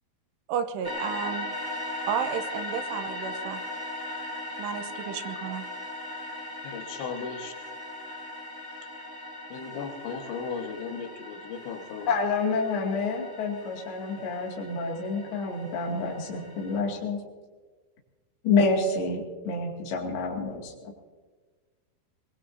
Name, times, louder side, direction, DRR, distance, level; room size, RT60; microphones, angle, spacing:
voice 1, 0.5-1.5 2.1-3.6 4.6-5.6, right 8 dB, 80° right, 9 dB, 2.9 m, -32 dB
sound 1, 0.8-16.8, left 1 dB, 5° right, 1.9 m, -38 dB
voice 2, 6.6-7.5 9.5-12.1, left 5 dB, 85° left, 3 dB, 3.8 m, -36 dB
voice 3, 12.1-17.2 18.4-20.7, left 4 dB, 35° left, -1 dB, 2.5 m, -28 dB
23.0 x 21.5 x 2.8 m, 1.4 s
omnidirectional pair, 5.0 m